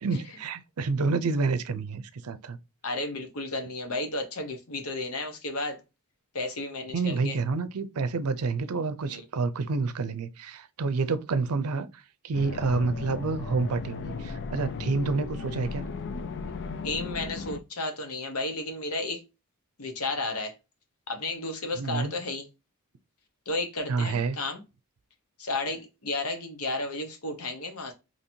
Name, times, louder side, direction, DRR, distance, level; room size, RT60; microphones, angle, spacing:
voice 1, 0.0-2.6 6.9-15.9 21.7-22.1 23.9-24.4, right 4 dB, 80° right, 0.5 m, -29 dB
voice 2, 2.8-5.8 6.3-7.4 9.1-9.2 16.8-19.2 19.8-20.5 21.1-22.4 23.5-24.6 25.4-27.9, left 2 dB, 75° left, 1.0 m, -33 dB
sound 1, 12.3-17.6, left 4 dB, 50° left, 0.4 m, -36 dB
4.3 x 3.0 x 2.7 m
head